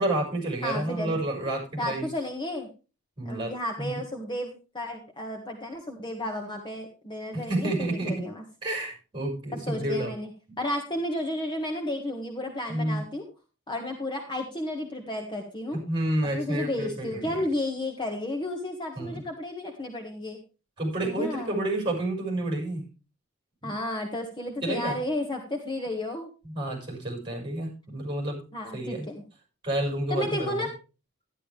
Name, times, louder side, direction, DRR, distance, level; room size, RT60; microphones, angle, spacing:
voice 1, 0.0-2.1 3.2-4.0 7.3-8.2 8.6-10.1 12.7-13.0 15.7-17.3 19.0-19.2 20.8-22.9 23.6-23.7 24.6-25.0 26.4-28.4 28.7-29.1 29.6-30.7, right 1 dB, 25° right, 2 dB, 5.9 m, -30 dB
voice 2, 0.6-1.2 1.8-2.7 3.2-8.4 9.7-10.3 10.6-13.2 13.7-15.8 16.3-20.4 21.0-21.8 23.6-26.3 28.5-29.2 30.1-30.7, left 1 dB, 20° left, 3 dB, 1.6 m, -32 dB
12.0 x 11.0 x 3.4 m, 0.31 s
head